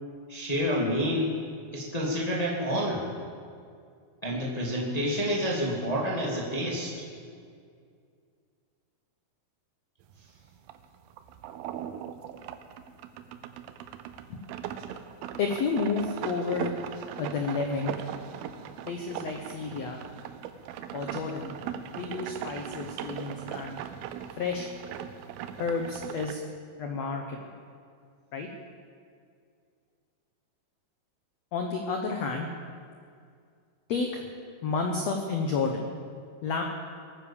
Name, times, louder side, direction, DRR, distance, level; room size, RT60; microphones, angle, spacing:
voice 1, 0.3-1.3 1.7-3.0 4.2-6.9, equal, 15° left, -3 dB, 1.3 m, -28 dB
sound 1, 10.0-26.4, right 9 dB, 85° right, 2.7 m, -39 dB
voice 2, 15.4-16.7 17.2-18.0 18.8-20.0 20.9-21.5 21.9-23.8 24.4-24.7 25.6-26.4 26.8-27.5 28.3-28.5 31.5-32.5 33.9-34.2 34.6-35.9 36.4-36.6, left 4 dB, 70° left, 3 dB, 1.6 m, -31 dB
21.0 x 9.5 x 7.2 m, 2.2 s
omnidirectional pair, 4.5 m